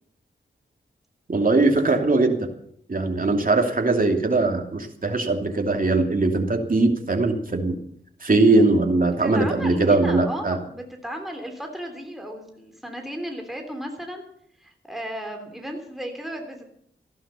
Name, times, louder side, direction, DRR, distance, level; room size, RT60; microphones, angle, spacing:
voice 1, 1.3-2.5 2.9-7.8 8.2-10.6, right 2 dB, 45° right, 3 dB, 2.8 m, -20 dB
voice 2, 9.2-14.2 14.6-16.7, equal, ahead, 4 dB, 3.4 m, -34 dB
15.0 x 11.5 x 6.9 m, 0.68 s
cardioid pair, 50°, 20 cm